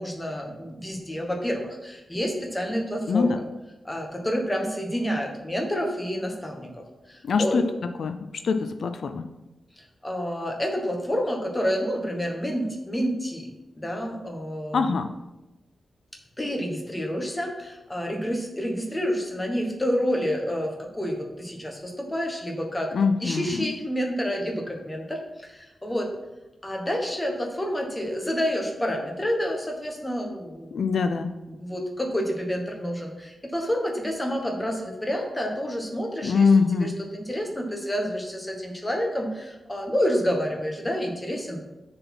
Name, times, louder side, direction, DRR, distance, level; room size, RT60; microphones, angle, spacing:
voice 1, 0.0-3.3 3.8-7.7 9.8-15.0 16.4-22.9 23.2-26.1 26.6-30.7 31.5-36.5 36.8-41.6, equal, 10° left, 1 dB, 1.2 m, -29 dB
voice 2, 7.2-7.6 8.0-9.3 14.7-15.1 22.9-23.7 30.7-31.3 36.2-36.9, left 5 dB, 70° left, 8 dB, 0.4 m, -23 dB
6.5 x 4.2 x 5.9 m, 1.0 s
wide cardioid pair, 145°, 0 cm